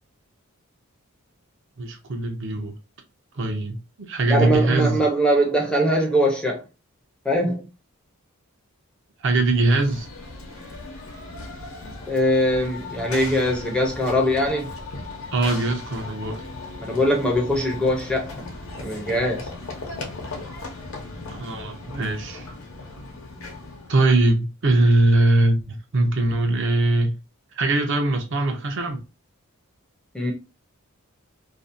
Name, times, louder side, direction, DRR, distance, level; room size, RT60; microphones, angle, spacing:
voice 1, 1.8-2.7 3.4-5.0 9.2-10.1 15.3-16.4 21.3-22.5 23.9-27.2 27.6-29.0, right 2 dB, 55° right, 0.5 m, -21 dB
voice 2, 4.3-6.6 7.2-7.6 12.1-14.7 16.8-18.5 18.8-19.5 30.1-30.3, equal, 5° left, 0.4 m, -22 dB
Run / Train, 9.6-24.0, left 3 dB, 65° left, 0.7 m, -37 dB
2.6 x 2.0 x 2.5 m
head